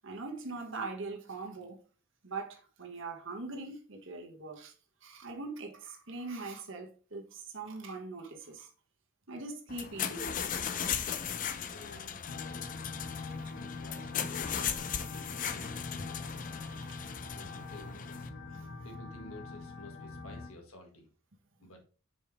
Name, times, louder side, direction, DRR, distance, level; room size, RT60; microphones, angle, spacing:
voice 1, 0.0-1.8 2.2-4.7 5.0-8.7 9.3-10.3 11.1-11.5 16.8-17.0 18.5-18.8, right 3 dB, 60° right, 1.3 m, -42 dB
sound 1, 9.7-18.3, left 8 dB, 35° left, 0.5 m, -37 dB
voice 2, 11.7-12.8 13.5-16.4 17.3-18.3 18.8-21.1 21.6-21.8, left 2 dB, 80° left, 1.6 m, -52 dB
sound 2, 12.2-20.5, left 3 dB, 60° left, 1.4 m, -43 dB
5.3 x 5.2 x 3.5 m
head